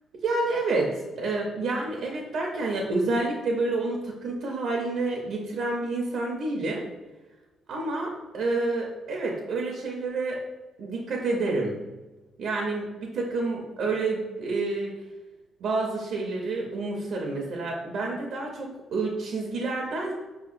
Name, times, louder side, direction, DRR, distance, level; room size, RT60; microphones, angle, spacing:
voice 1, 0.2-6.8 7.7-10.4 10.8-11.8 12.4-14.9 15.6-20.1, right 3 dB, 70° right, 0 dB, 0.6 m, -29 dB
4.9 x 2.8 x 2.5 m, 1.2 s
cardioid pair, 90°, 0 cm